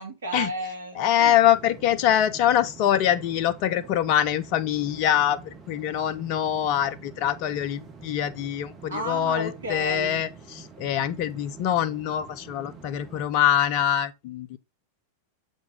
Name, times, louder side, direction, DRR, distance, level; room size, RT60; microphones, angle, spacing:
voice 1, 0.0-1.3 8.9-10.2, right 2 dB, 70° right, 2.5 m, -33 dB
voice 2, 0.9-5.4 5.7-14.6, left 10 dB, 45° left, 0.6 m, -24 dB
sound 1, 1.2-13.3, right 5 dB, 25° right, 1.9 m, -47 dB
7.1 x 5.3 x 3.6 m
figure-of-eight pair, 90°, 0 cm